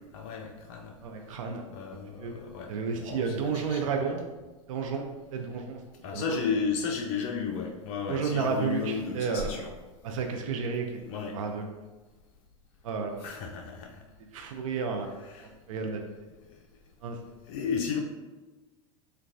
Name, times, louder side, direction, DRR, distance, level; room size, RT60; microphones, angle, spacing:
voice 1, 0.1-0.9 1.7-3.8 6.0-9.7 11.1-11.4 13.2-14.0 15.2-15.5 16.4-16.6 17.5-18.0, left 5 dB, 55° left, 1 dB, 0.4 m, -33 dB
voice 2, 1.0-1.7 2.2-2.3 2.7-4.2 4.7-5.8 6.1-6.4 8.1-9.5 10.0-11.0 11.3-11.6 12.8-13.2 14.3-16.1 17.0-17.2, right 5 dB, 70° right, 3 dB, 0.4 m, -32 dB
3.9 x 2.2 x 2.5 m, 1.2 s
hypercardioid pair, 95°, 18 cm